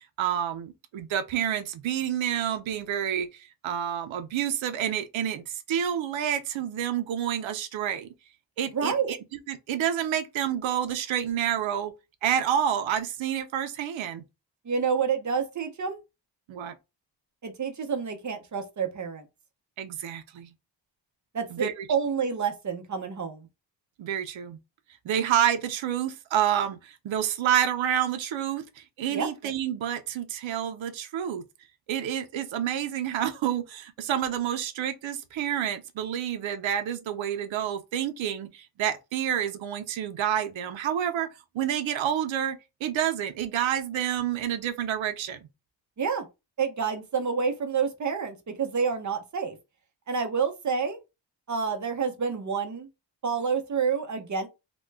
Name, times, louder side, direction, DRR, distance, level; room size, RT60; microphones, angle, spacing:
voice 1, 0.0-8.1 8.6-9.2 9.5-11.9 12.2-14.2 16.5-16.8 19.8-20.5 21.5-21.8 24.0-24.6 25.0-31.4 31.9-41.3 41.5-45.4, right 10 dB, 90° right, 0.6 m, -29 dB
voice 2, 8.7-9.1 14.6-16.0 17.4-19.2 21.3-23.5 29.1-29.3 46.0-46.3 46.6-49.6 50.1-51.0 51.5-52.9 53.2-54.5, right 6 dB, 40° right, 0.7 m, -28 dB
3.0 x 2.2 x 3.2 m
wide cardioid pair, 110°, 45 cm